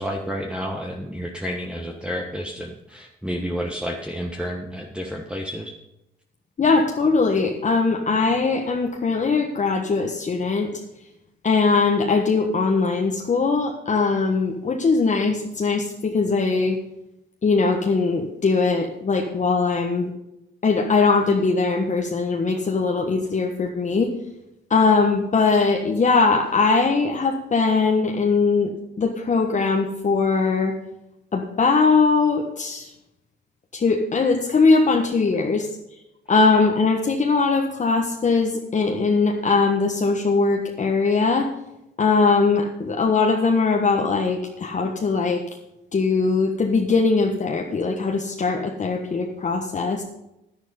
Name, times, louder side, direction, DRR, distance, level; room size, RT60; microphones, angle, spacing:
voice 1, 0.0-5.7, equal, 5° right, 1 dB, 1.4 m, -30 dB
voice 2, 6.6-10.7 11.4-16.8 17.4-20.1 20.6-24.1 24.7-28.7 29.0-30.7 31.3-32.9 33.7-35.7 36.3-41.5 42.0-45.4 45.9-50.0, left 4 dB, 40° left, 1 dB, 1.4 m, -20 dB
10.5 x 10.5 x 5.4 m, 0.88 s
cardioid pair, 90°, 20 cm